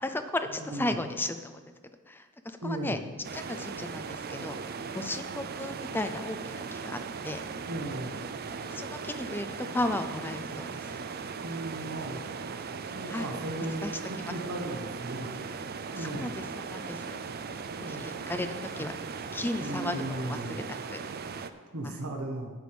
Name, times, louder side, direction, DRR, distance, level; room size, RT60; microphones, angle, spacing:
voice 1, 0.0-1.6 2.1-3.0 3.3-4.6 4.9-7.4 8.7-11.0 13.1-13.3 13.8-13.9 14.2-14.3 16.0-17.2 17.8-18.5 18.8-18.9 19.3-21.0 21.8-22.0, left 1 dB, 10° left, 8 dB, 0.5 m, -35 dB
voice 2, 0.6-1.0 2.6-3.0 7.7-8.3 11.4-12.2 12.9-15.4 15.9-16.3 17.8-18.0 19.6-20.6 21.7-22.5, right 1 dB, 85° right, 1 dB, 1.5 m, -36 dB
sound 1, 3.2-21.5, right 5 dB, 45° right, 0.5 m, -38 dB
9.3 x 5.1 x 7.9 m, 1.5 s
head